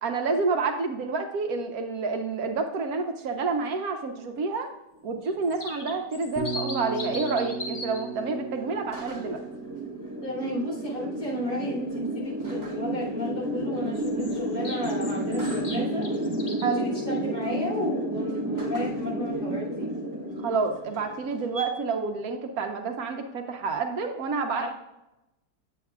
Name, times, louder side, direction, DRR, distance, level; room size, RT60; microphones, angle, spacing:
voice 1, 0.0-4.7 5.0-9.4 16.6-16.9 20.4-24.7, right 4 dB, 70° right, 5 dB, 1.2 m, -29 dB
sound 1, 5.2-8.0 13.9-16.8, left 2 dB, 35° left, 0.8 m, -39 dB
sound 2, 5.3-21.7, right 1 dB, 15° right, 0.9 m, -32 dB
Bass guitar, 6.4-14.4, right 5 dB, 10° left, 0.6 m, -40 dB
voice 2, 10.2-16.1 16.7-19.9 24.6-24.7, left 1 dB, 70° left, -7 dB, 3.5 m, -33 dB
8.2 x 8.1 x 2.4 m, 0.92 s
omnidirectional pair, 1.7 m